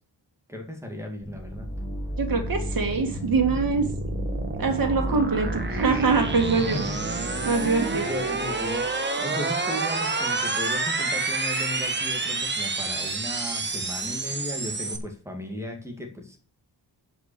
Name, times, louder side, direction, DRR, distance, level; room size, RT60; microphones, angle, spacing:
voice 1, 0.5-1.7 5.1-5.3 6.7-6.8 7.6-8.8 9.2-16.4, left 1 dB, 5° right, 1 dB, 2.1 m, -35 dB
sound 1, 1.2-8.9, equal, 10° left, 1.8 m, -34 dB
sound 2, 1.4-15.0, right 3 dB, 25° right, 1.3 m, -29 dB
voice 2, 2.2-3.8 4.6-6.8 7.4-8.1, right 4 dB, 55° right, 3 dB, 2.4 m, -24 dB
10.0 x 5.6 x 6.8 m, 0.42 s
wide cardioid pair, 175°, 41 cm